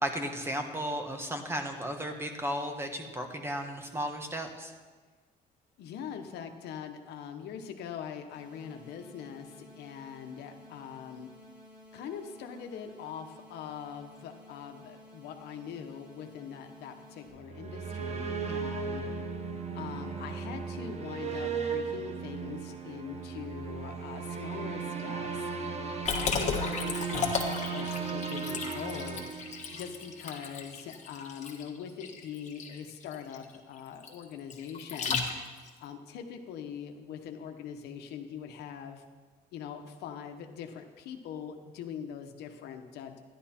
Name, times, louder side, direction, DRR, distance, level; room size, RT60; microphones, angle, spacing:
voice 1, 0.0-4.7, equal, 15° right, 5 dB, 1.3 m, -34 dB
voice 2, 5.8-11.3 11.9-19.1 19.7-25.5 26.1-29.2 29.7-35.2 35.8-39.0 39.5-43.2, left 8 dB, 75° left, 5 dB, 1.1 m, -42 dB
sound 1, 8.3-17.3, left 1 dB, 80° right, 3.9 m, -54 dB
sound 2, 17.4-30.2, right 5 dB, 40° right, 1.1 m, -36 dB
Liquid, 26.1-35.7, left 5 dB, 45° left, 1.6 m, -35 dB
11.5 x 11.0 x 4.4 m, 1.4 s
cardioid pair, 110°, 17 cm